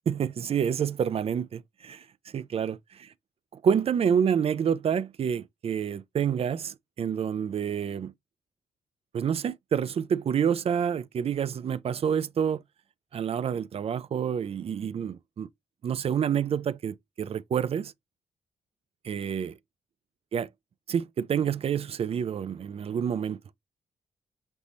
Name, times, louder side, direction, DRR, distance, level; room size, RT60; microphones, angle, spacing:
voice 1, 0.1-2.0 2.3-3.1 3.5-8.1 9.1-12.6 13.1-15.5 15.8-17.9 19.0-19.5 20.3-20.5 20.9-23.4, right 8 dB, 50° right, 0.4 m, -28 dB
5.3 x 3.0 x 2.6 m
supercardioid pair, 50°, 13 cm